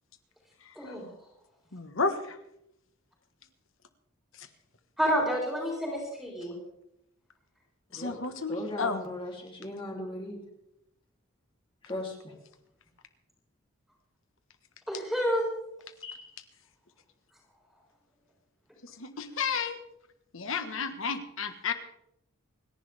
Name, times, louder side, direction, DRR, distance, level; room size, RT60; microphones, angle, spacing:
voice 1, 1.7-2.4 4.4-4.5 7.9-9.0 19.0-19.8 20.3-21.7, left 4 dB, 65° left, 8 dB, 1.5 m, -32 dB
voice 2, 5.0-6.5 14.9-15.5, equal, ahead, -3 dB, 4.0 m, -29 dB
voice 3, 8.5-10.4 11.8-12.3 16.0-16.3, left 1 dB, 25° left, -1 dB, 3.2 m, -38 dB
29.0 x 11.0 x 3.6 m, 0.80 s
head